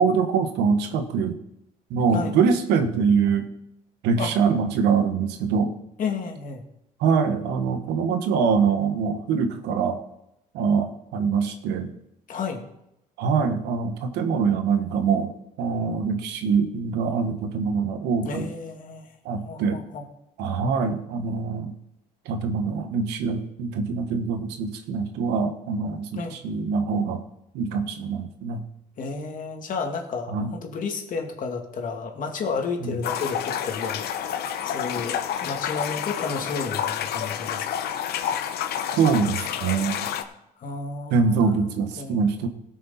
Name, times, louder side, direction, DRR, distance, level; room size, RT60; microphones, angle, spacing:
voice 1, 0.0-1.4 1.9-3.5 4.0-5.7 7.0-10.0 10.5-11.9 13.2-18.5 19.2-19.8 20.4-21.7 22.2-27.2 27.5-28.6 30.3-30.5 32.8-33.0 38.9-40.1 41.1-42.5, right 5 dB, 90° right, 8 dB, 1.3 m, -24 dB
voice 2, 6.0-6.6 12.3-12.6 18.2-19.1 19.4-20.0 26.2-26.4 29.0-34.1 34.6-37.8 40.6-41.5 42.0-42.2, left 4 dB, 50° left, 3 dB, 2.1 m, -32 dB
sound 1, 33.0-40.2, left 9 dB, 70° left, 0.9 m, -29 dB
17.0 x 6.5 x 4.2 m, 0.83 s
cardioid pair, 110°, 17 cm